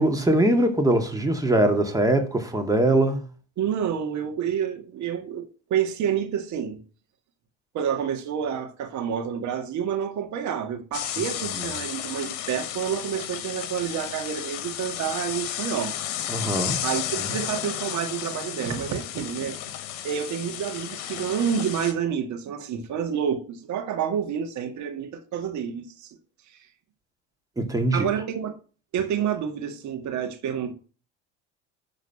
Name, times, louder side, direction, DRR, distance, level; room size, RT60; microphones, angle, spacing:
voice 1, 0.0-3.2 16.3-16.8 27.6-28.1, right 1 dB, 10° right, 2.4 m, -22 dB
voice 2, 3.6-6.8 7.7-16.0 16.8-19.6 20.0-26.1 27.9-28.6 28.9-30.7, right 8 dB, 55° right, 2.1 m, -28 dB
sound 1, 10.9-21.9, left 11 dB, 65° left, 1.4 m, -33 dB
11.0 x 4.1 x 7.2 m
hypercardioid pair, 80°, 35 cm